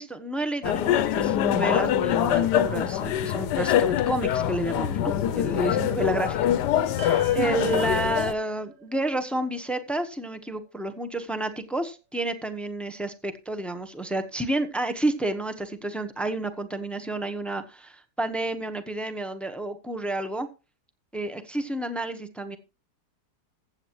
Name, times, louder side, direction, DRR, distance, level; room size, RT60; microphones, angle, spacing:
voice 1, 0.0-6.5 6.8-20.5 21.1-22.6, right 2 dB, ahead, 8 dB, 0.7 m, -30 dB
sound 1, 0.6-8.3, left 11 dB, 75° left, 1.2 m, -24 dB
sound 2, 7.0-11.5, right 7 dB, 90° right, 1.6 m, -48 dB
15.0 x 8.2 x 3.0 m, 0.31 s
omnidirectional pair, 1.9 m